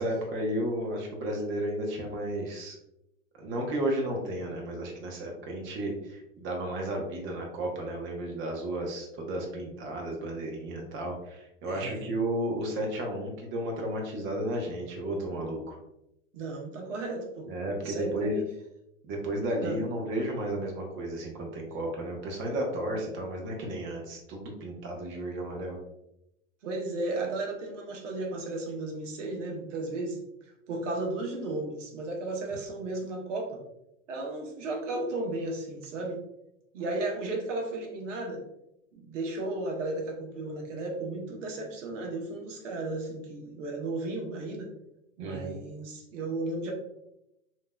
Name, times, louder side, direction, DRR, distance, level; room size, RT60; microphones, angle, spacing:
voice 1, 0.0-2.8 3.4-15.8 17.5-18.3 19.0-25.8 45.2-45.5, right 1 dB, 30° right, 1 dB, 1.0 m, -33 dB
voice 2, 11.6-12.1 16.3-17.5 17.8-18.5 19.6-19.8 26.6-30.2 30.7-33.6 34.1-36.2 36.7-38.4 38.9-44.7 45.2-46.7, right 2 dB, 70° right, 1 dB, 1.0 m, -34 dB
3.2 x 2.9 x 2.2 m, 0.85 s
hypercardioid pair, 115°, 38 cm